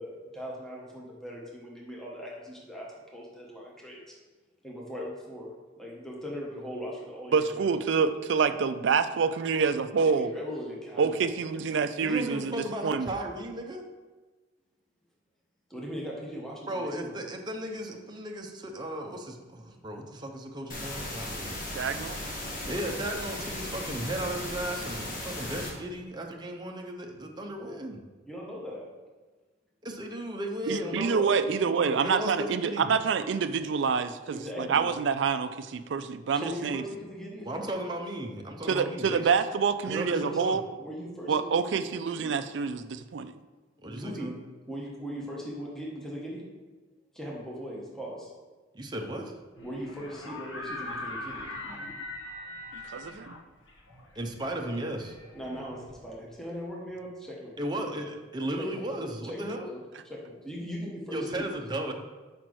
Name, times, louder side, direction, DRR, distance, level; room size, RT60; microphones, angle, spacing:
voice 1, 0.0-4.2 4.6-5.5 5.8-7.7 10.0-11.5 12.1-12.2 15.7-17.1 28.2-28.9 30.6-32.1 34.1-34.9 36.3-37.7 38.6-39.0 39.9-40.4 40.8-42.3 43.9-44.3 44.7-46.4 47.1-48.3 49.6-51.5 55.3-57.6 58.6-58.9 59.2-61.6, equal, 5° left, -4 dB, 1.1 m, -39 dB
voice 2, 7.3-10.3 11.0-13.1 21.8-22.2 30.7-36.8 38.7-40.6 41.3-43.4 52.9-53.3, right 5 dB, 65° right, 10 dB, 0.4 m, -27 dB
voice 3, 12.0-13.8 16.7-21.6 22.7-28.0 29.8-31.2 32.0-32.9 37.4-39.3 39.9-40.6 43.8-44.3 48.7-49.4 54.2-55.2 57.6-59.7 61.1-61.9, right 1 dB, 20° right, 1 dB, 0.7 m, -35 dB
sound 1, 20.7-25.7, left 1 dB, 45° left, 1.4 m, -36 dB
sound 2, 49.6-56.4, left 2 dB, 75° left, 1.1 m, -41 dB
5.1 x 4.5 x 6.1 m, 1.3 s
head